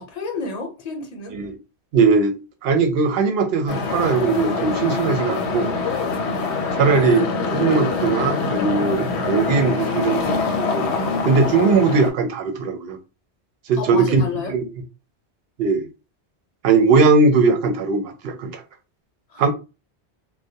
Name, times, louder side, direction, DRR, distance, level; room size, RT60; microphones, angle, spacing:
voice 1, 0.0-1.3 5.8-6.5 13.8-14.5 19.3-19.5, left 3 dB, 45° left, 0.6 m, -31 dB
voice 2, 1.9-2.3 2.6-5.7 6.8-7.3 7.5-10.8 11.2-13.0 13.7-14.2 14.5-14.7 15.6-15.8 16.6-18.6 19.4-19.5, right 4 dB, 65° right, 0.7 m, -19 dB
sound 1, 3.7-12.1, left 4 dB, 75° left, 0.8 m, -24 dB
2.1 x 2.1 x 2.7 m
omnidirectional pair, 1.2 m